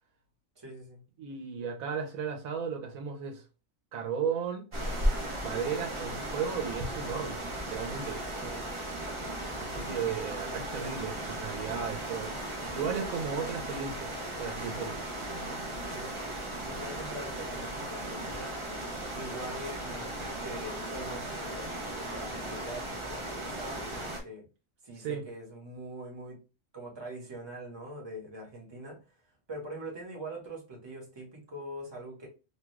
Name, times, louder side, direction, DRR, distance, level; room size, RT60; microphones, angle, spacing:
voice 1, 0.6-1.0 8.4-8.7 15.3-16.1 16.6-18.6 19.1-24.5 24.8-26.4 26.7-29.0 29.5-32.3, right 1 dB, 20° right, 1.0 m, -43 dB
voice 2, 1.2-3.4 3.9-4.6 5.4-8.2 9.6-12.3 12.7-14.1 14.4-15.0 25.0-25.2, right 6 dB, 90° right, 1.2 m, -35 dB
sound 1, 4.7-24.2, right 1 dB, 35° right, 0.5 m, -36 dB
2.8 x 2.4 x 3.1 m
omnidirectional pair, 1.4 m